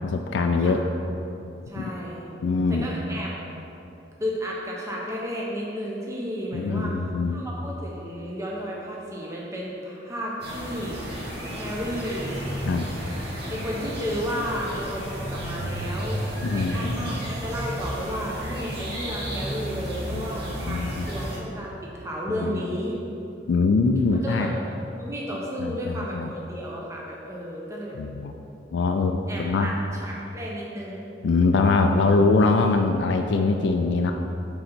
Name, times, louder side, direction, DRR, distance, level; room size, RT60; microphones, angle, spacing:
voice 1, 0.0-0.8 1.8-1.9 2.4-2.9 6.5-7.4 12.7-12.9 16.4-17.1 20.1-20.3 20.6-21.0 22.4-22.6 23.5-24.5 25.6-26.3 28.0-28.3 28.7-29.7 31.2-34.1, left 3 dB, 70° left, 4 dB, 0.3 m, -23 dB
voice 2, 1.7-2.3 2.7-3.5 4.2-6.9 7.3-11.0 11.5-12.4 13.5-16.2 16.5-23.0 24.1-24.6 25.0-28.0 29.3-31.1, equal, 15° right, -4 dB, 0.8 m, -33 dB
sound 1, 10.4-21.4, equal, 55° right, 1.5 m, -32 dB
9.2 x 3.9 x 4.4 m, 2.8 s
head